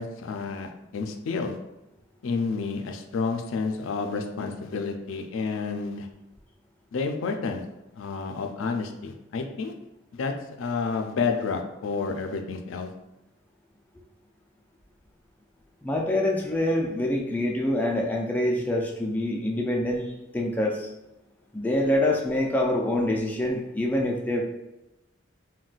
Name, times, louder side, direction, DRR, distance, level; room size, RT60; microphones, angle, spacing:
voice 1, 0.0-1.6 2.2-6.1 6.9-7.6 8.0-9.7 10.1-10.3 10.6-12.9, left 4 dB, 90° left, 5 dB, 0.4 m, -30 dB
voice 2, 15.8-20.9 21.5-24.4, left 1 dB, 10° left, -1 dB, 0.3 m, -25 dB
3.8 x 2.2 x 2.4 m, 0.95 s
head